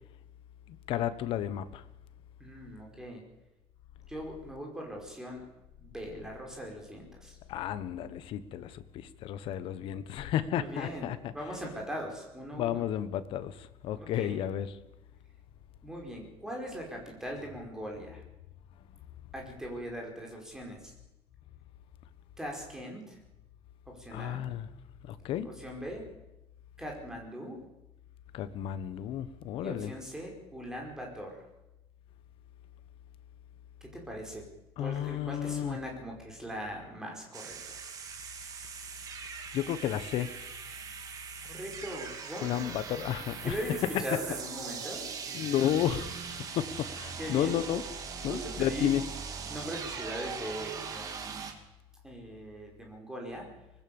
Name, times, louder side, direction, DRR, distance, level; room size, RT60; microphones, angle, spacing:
voice 1, 0.7-1.8 7.5-11.3 12.5-14.7 24.1-24.7 25.0-25.5 28.3-29.9 34.8-35.8 39.5-40.4 42.4-43.6 45.3-46.2 46.5-47.8 48.2-49.0, left 11 dB, 50° left, 1.3 m, -32 dB
voice 2, 2.4-3.2 4.1-5.4 5.8-7.4 10.5-11.1 11.3-12.8 13.9-14.4 15.8-18.2 19.3-20.9 22.4-23.2 23.9-24.4 25.4-26.0 26.8-27.6 29.6-31.4 33.8-34.4 34.8-37.8 41.4-42.8 43.4-45.0 47.2-47.6 48.3-48.9 49.5-51.5 52.0-53.5, equal, 5° right, 5.1 m, -40 dB
sound 1, 37.3-51.5, right 6 dB, 30° right, 2.3 m, -41 dB
24.5 x 20.0 x 7.1 m
cardioid pair, 180°, 11 cm